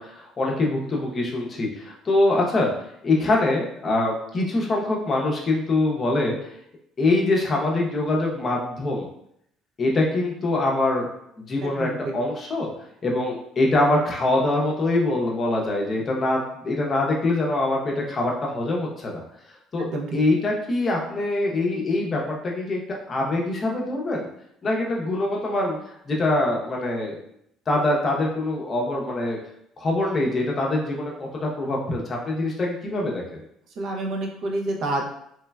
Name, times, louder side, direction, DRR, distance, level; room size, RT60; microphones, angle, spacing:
voice 1, 0.0-6.4 7.0-9.1 9.8-11.1 11.4-12.7 13.0-19.2 19.7-19.9 20.1-24.3 24.6-25.8 26.1-27.2 27.7-29.4 29.8-33.4, left 2 dB, 35° left, -1 dB, 0.6 m, -24 dB
voice 2, 11.6-12.1 19.8-20.2 33.8-35.1, right 2 dB, 60° right, 1 dB, 0.5 m, -28 dB
3.1 x 2.1 x 2.2 m, 0.73 s
cardioid pair, 115°, 0 cm